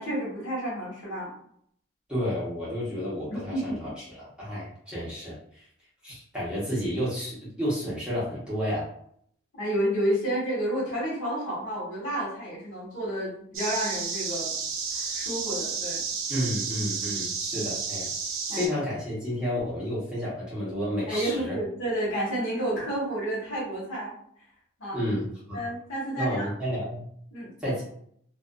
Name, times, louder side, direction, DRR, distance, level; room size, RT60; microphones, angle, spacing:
voice 1, 0.0-1.3 3.3-3.8 9.6-14.5 14.9-16.0 18.5-18.6 21.1-24.1 24.8-25.0 25.5-26.5 27.3-27.7, right 1 dB, 70° left, -5 dB, 1.2 m, -30 dB
voice 2, 2.1-5.6 6.0-8.9 16.3-18.1 18.5-21.6 24.9-25.6 26.2-27.0 27.6-27.8, equal, 5° right, -9 dB, 0.9 m, -31 dB
sound 1, 13.5-18.7, right 5 dB, 90° right, 0.6 m, -32 dB
2.4 x 2.4 x 2.3 m, 0.66 s
head